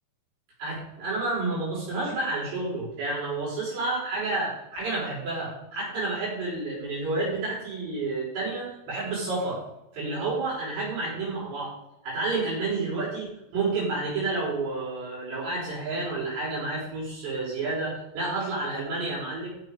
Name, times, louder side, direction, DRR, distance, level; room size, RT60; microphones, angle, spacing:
voice 1, 0.6-9.6 9.9-11.7 12.0-19.5, right 3 dB, 65° right, -6 dB, 7.4 m, -30 dB
14.5 x 7.8 x 4.9 m, 0.88 s
omnidirectional pair, 5.5 m